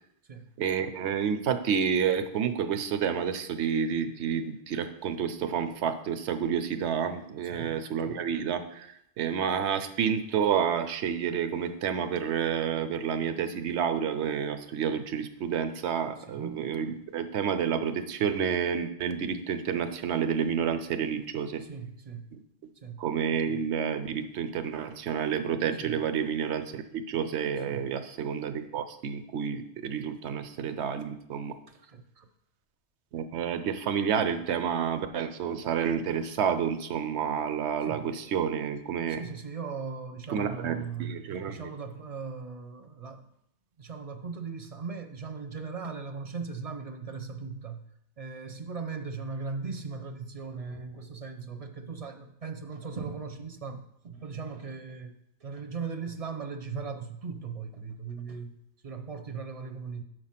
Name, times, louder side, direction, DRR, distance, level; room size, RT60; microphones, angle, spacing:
voice 1, 0.6-8.9 9.2-21.6 23.0-31.5 33.1-39.2 40.3-41.6, right 7 dB, 80° right, 9 dB, 1.0 m, -29 dB
voice 2, 7.5-7.9 16.2-16.6 21.6-22.3 22.8-23.0 25.8-26.0 27.7-27.9 31.7-32.3 37.8-38.1 39.1-41.2 41.4-43.3 43.8-47.8 48.2-55.1 55.4-58.6 58.8-60.0, right 5 dB, 40° right, 5 dB, 0.6 m, -38 dB
6.9 x 4.8 x 5.8 m, 0.76 s
omnidirectional pair, 1.1 m